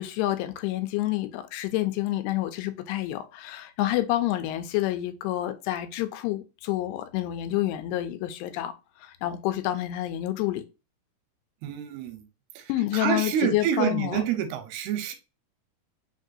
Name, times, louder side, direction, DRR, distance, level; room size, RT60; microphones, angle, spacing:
voice 1, 0.0-10.6 12.7-14.2, left 14 dB, 90° left, 2.6 m, -28 dB
voice 2, 11.6-12.2 12.6-15.1, right 8 dB, 85° right, 2.6 m, -28 dB
5.9 x 2.7 x 2.4 m
omnidirectional pair, 4.6 m